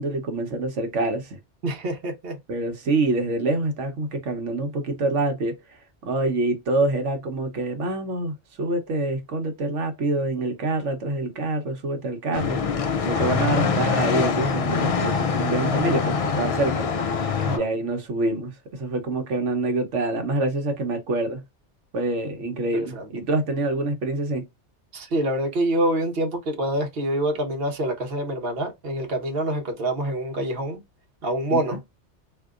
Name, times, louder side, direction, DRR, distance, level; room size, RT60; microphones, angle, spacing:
voice 1, 0.0-1.4 2.5-5.5 6.0-12.6 13.1-16.9 17.5-21.4 21.9-24.4 31.5-31.6, right 2 dB, 90° right, 1.2 m, -26 dB
voice 2, 1.6-2.4 17.4-17.6 22.7-23.1 24.9-30.8 31.2-31.8, right 1 dB, 55° right, 1.1 m, -26 dB
sound 1, 12.3-17.6, left 5 dB, 60° left, 0.3 m, -24 dB
3.6 x 2.7 x 2.4 m
omnidirectional pair, 1.2 m